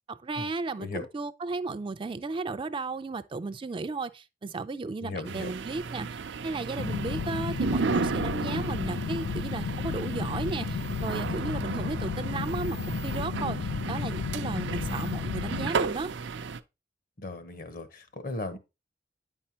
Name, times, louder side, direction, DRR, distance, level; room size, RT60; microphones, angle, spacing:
voice 1, 0.1-16.1, right 3 dB, 30° right, 0.4 m, -34 dB
voice 2, 5.0-5.5 17.2-18.6, left 2 dB, 55° left, 1.0 m, -36 dB
sound 1, 5.2-16.6, right 5 dB, 85° right, 0.5 m, -34 dB
sound 2, 6.8-15.7, left 7 dB, 85° left, 0.3 m, -33 dB
9.2 x 5.4 x 2.8 m
head